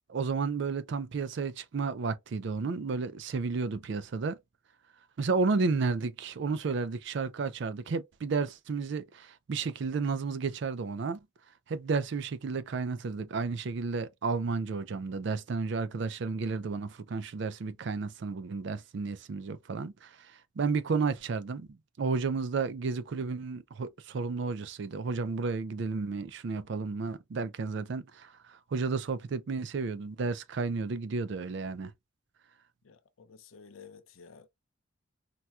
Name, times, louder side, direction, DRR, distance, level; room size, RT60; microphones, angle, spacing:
voice 1, 0.1-4.4 5.2-11.2 11.7-21.7 22.0-31.9, right 4 dB, 60° right, 0.4 m, -32 dB
voice 2, 32.8-34.5, left 5 dB, 80° left, 0.5 m, -52 dB
4.2 x 2.3 x 2.3 m
head